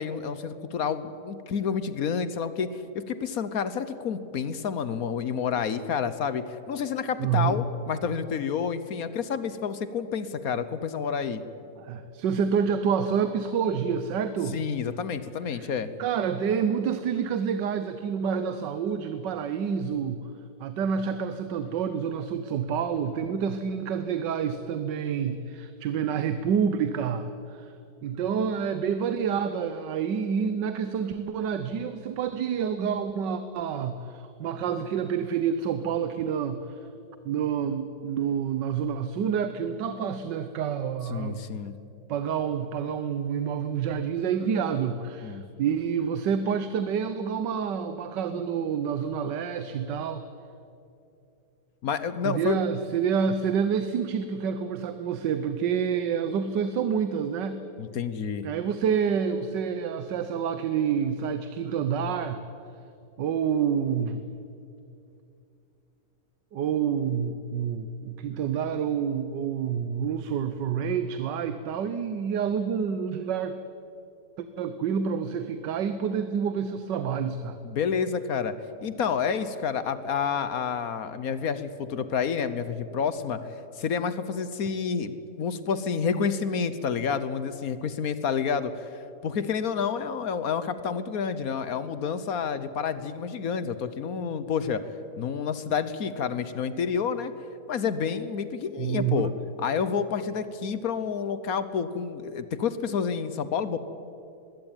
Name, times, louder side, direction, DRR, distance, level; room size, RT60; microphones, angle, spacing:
voice 1, 0.0-11.4 14.5-15.9 41.1-41.7 45.2-45.4 51.8-52.6 57.8-58.5 77.6-78.6 78.8-83.4 83.8-88.9 89.2-94.8 95.2-97.3 97.7-99.3 99.6-103.8, left 6 dB, 60° left, 13 dB, 1.3 m, -29 dB
voice 2, 7.2-7.6 11.8-14.6 15.5-15.7 16.0-20.2 20.6-27.7 28.0-36.8 37.2-41.4 42.1-50.3 52.2-57.6 58.4-62.4 63.2-64.2 66.5-73.6 74.4-77.6 98.8-99.3, right 7 dB, 85° right, 10 dB, 1.5 m, -28 dB
21.0 x 16.0 x 9.0 m, 2.7 s
omnidirectional pair, 1.8 m